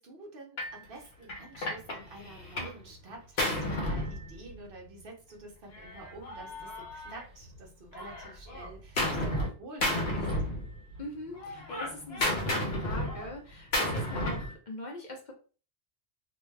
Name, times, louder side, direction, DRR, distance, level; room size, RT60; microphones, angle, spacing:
voice 1, 0.0-10.3, right 2 dB, 60° right, 0 dB, 0.9 m, -48 dB
Gunshot gunfire, 0.6-0.8 1.3-2.8 3.1-4.8 5.7-7.6 7.9-9.5 9.8-11.0 11.3-14.5, left 1 dB, 75° left, 1.0 m, -32 dB
voice 2, 11.0-15.3, left 1 dB, 50° left, 0 dB, 0.7 m, -42 dB
2.6 x 2.2 x 3.2 m, 0.37 s
omnidirectional pair, 1.1 m